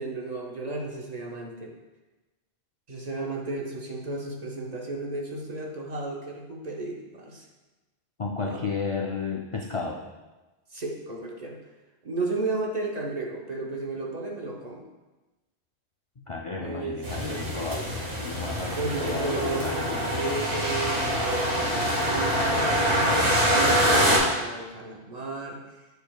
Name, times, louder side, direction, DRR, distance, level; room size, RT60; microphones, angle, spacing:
voice 1, 0.0-1.7 2.9-7.5 8.4-8.6 10.7-11.6 12.0-14.8 16.6-17.7 18.8-25.6, right 3 dB, 40° right, -1 dB, 0.9 m, -33 dB
voice 2, 8.2-10.0 16.3-17.8 18.2-20.2, left 4 dB, 45° left, -1 dB, 0.4 m, -32 dB
sound 1, 17.0-24.2, equal, 80° right, 2.0 m, -25 dB
8.0 x 6.8 x 2.3 m, 1.1 s
omnidirectional pair, 1.2 m